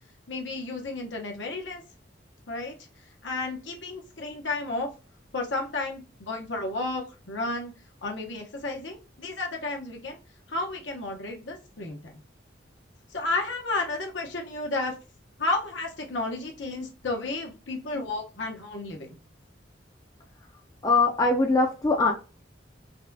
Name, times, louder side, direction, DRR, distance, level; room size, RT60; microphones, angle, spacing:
voice 1, 0.3-1.8 2.5-2.7 3.2-4.9 5.3-7.7 8.0-10.2 10.5-12.0 13.1-14.9 15.4-19.2, left 2 dB, 80° left, 0.9 m, -32 dB
voice 2, 20.8-22.1, left 3 dB, 20° left, 0.4 m, -22 dB
4.0 x 2.3 x 2.7 m
head